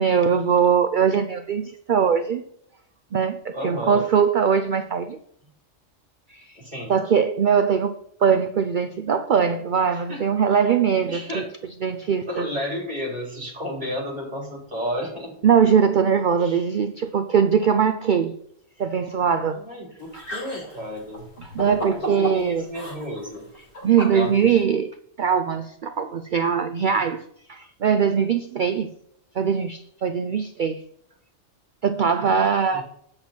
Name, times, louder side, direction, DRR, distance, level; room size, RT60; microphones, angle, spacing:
voice 1, 0.0-2.4 3.1-5.2 6.3-6.6 6.9-11.4 11.8-12.5 15.4-18.4 18.8-19.6 20.1-20.2 21.4-22.7 23.8-24.9 25.2-27.2 27.5-28.9 29.3-30.8 31.8-32.8, right 7 dB, 55° right, 8 dB, 0.6 m, -21 dB
voice 2, 3.5-4.0 6.6-6.9 9.9-10.2 11.0-11.5 12.2-15.3 16.4-16.6 19.5-21.3 22.2-23.4 24.1-24.6 27.0-27.1 32.7-32.8, left 1 dB, 35° right, -2 dB, 3.8 m, -32 dB
sound 1, 20.0-24.6, right 1 dB, 85° left, 4.4 m, -34 dB
8.8 x 7.8 x 4.4 m, 0.69 s
omnidirectional pair, 1.3 m